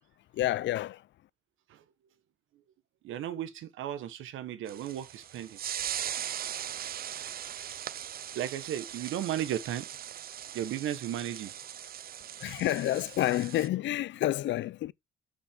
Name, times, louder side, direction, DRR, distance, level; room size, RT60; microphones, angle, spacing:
voice 1, 0.3-1.1 12.4-14.9, left 14 dB, 70° left, 0.5 m, -29 dB
voice 2, 3.0-5.6 8.3-9.9 10.5-11.5, right 11 dB, 85° right, 1.2 m, -35 dB
sound 1, 4.7-13.7, right 10 dB, 50° right, 0.5 m, -40 dB
8.1 x 5.8 x 3.6 m
cardioid pair, 90°, 20 cm